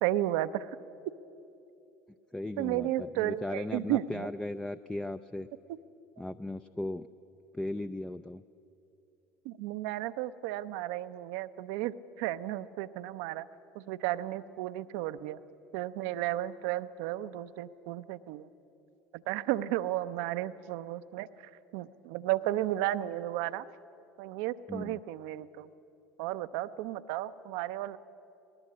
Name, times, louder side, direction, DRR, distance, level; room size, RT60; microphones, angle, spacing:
voice 1, 0.0-0.7 2.6-4.3 9.4-13.5 13.7-15.4 15.7-18.5 19.3-21.3 21.7-23.6 24.2-25.7 26.2-28.0, right 14 dB, 65° right, 12 dB, 0.7 m, -33 dB
voice 2, 2.3-5.5 6.2-7.1 7.5-8.4 24.7-25.0, left 1 dB, 10° left, 10 dB, 0.5 m, -37 dB
19.5 x 19.0 x 8.4 m, 2.8 s
hypercardioid pair, 70°, 8 cm